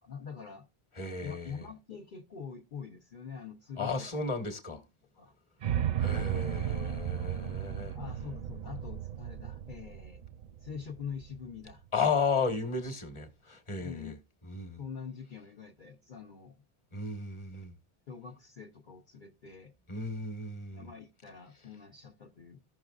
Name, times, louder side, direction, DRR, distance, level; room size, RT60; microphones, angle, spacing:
voice 1, 0.0-0.6 1.2-4.1 4.7-4.8 5.1-5.3 7.9-10.2 10.6-11.8 12.4-12.5 13.8-14.2 14.8-16.6 18.1-19.7 20.7-22.6, left 6 dB, 55° left, 1.0 m, -44 dB
voice 2, 1.0-1.6 3.8-4.8 6.0-8.0 11.9-14.1 14.4-14.8 16.9-17.7 19.9-20.9, left 4 dB, 30° left, 1.3 m, -34 dB
sound 1, 5.6-11.7, right 10 dB, 55° right, 0.6 m, -35 dB
15.0 x 6.0 x 2.4 m
omnidirectional pair, 1.0 m